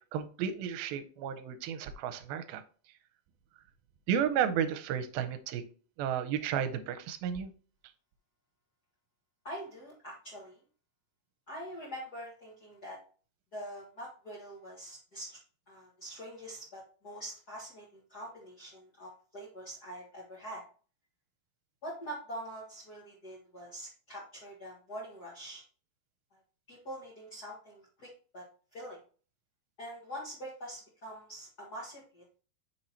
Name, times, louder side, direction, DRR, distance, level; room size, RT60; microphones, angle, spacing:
voice 1, 0.1-2.6 4.1-5.6 6.0-7.5, right 8 dB, 85° right, 9 dB, 2.4 m, -32 dB
voice 2, 9.4-10.6 11.5-13.0 13.5-15.4 15.7-20.6 21.8-25.6 26.7-28.4 28.7-29.0 29.8-32.2, equal, 75° left, -4 dB, 0.8 m, -44 dB
6.3 x 4.4 x 4.1 m, 0.40 s
omnidirectional pair, 4.3 m